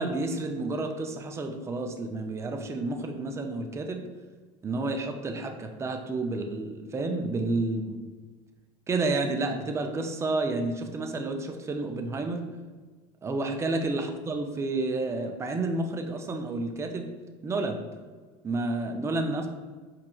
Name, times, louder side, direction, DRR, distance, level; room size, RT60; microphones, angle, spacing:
voice 1, 0.0-4.0 4.6-8.0 8.9-12.4 13.2-17.1 17.4-17.8 18.4-19.5, right 2 dB, 15° right, 4 dB, 0.4 m, -30 dB
4.6 x 3.0 x 2.3 m, 1.4 s
supercardioid pair, 115°, 20 cm